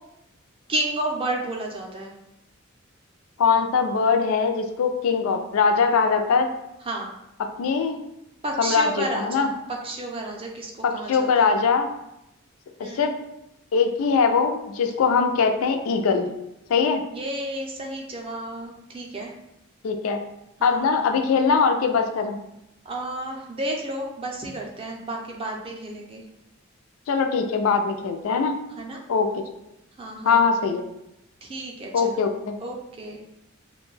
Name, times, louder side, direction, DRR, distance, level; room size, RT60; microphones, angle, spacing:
voice 1, 0.7-2.1 6.9-7.1 8.4-9.5 9.8-11.5 12.8-13.1 17.1-19.3 20.6-20.9 22.9-26.2 28.8-29.0 30.0-30.4 31.4-32.2 32.6-33.2, right 1 dB, 25° right, 0 dB, 0.4 m, -31 dB
voice 2, 3.4-6.5 7.6-8.0 8.6-9.5 10.8-11.9 12.8-13.1 13.7-16.3 16.7-17.0 19.8-20.2 20.6-22.4 27.1-28.6 29.1-29.3 30.2-30.8 31.9-32.6, left 5 dB, 85° left, 6 dB, 0.3 m, -21 dB
2.5 x 2.2 x 3.1 m, 0.85 s
head